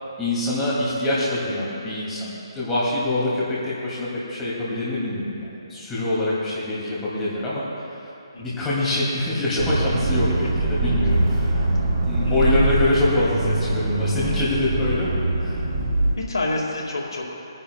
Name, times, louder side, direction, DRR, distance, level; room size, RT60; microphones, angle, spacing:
voice 1, 0.2-7.6 8.4-11.7 12.0-15.6, left 2 dB, 10° left, -9 dB, 2.5 m, -25 dB
voice 2, 8.3-8.7 12.2-12.4 16.2-17.3, left 2 dB, 90° left, -1 dB, 2.0 m, -28 dB
Accelerating revving vroom, 9.6-16.2, right 2 dB, 40° right, 1.1 m, -23 dB
22.5 x 10.0 x 2.3 m, 2.8 s
hypercardioid pair, 155°, 3 cm